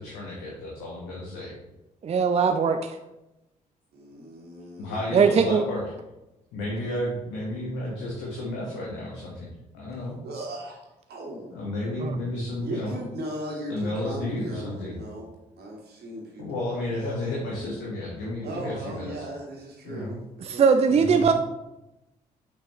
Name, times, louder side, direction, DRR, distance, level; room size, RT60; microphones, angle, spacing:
voice 1, 0.0-1.5 4.8-5.8 6.5-10.2 11.5-13.0 13.7-15.0 16.4-19.2 19.8-20.2 20.9-21.3, left 1 dB, 70° left, -4 dB, 1.2 m, -32 dB
voice 2, 2.0-3.0 5.1-5.6 12.0-12.1 20.5-21.3, right 5 dB, 35° right, 7 dB, 0.5 m, -20 dB
voice 3, 4.0-5.5 10.2-10.7 11.1-11.5 12.6-15.3 15.6-16.9 18.4-21.3, right 1 dB, 55° right, -2 dB, 2.2 m, -38 dB
6.7 x 5.6 x 3.0 m, 0.95 s
figure-of-eight pair, 40°, 19 cm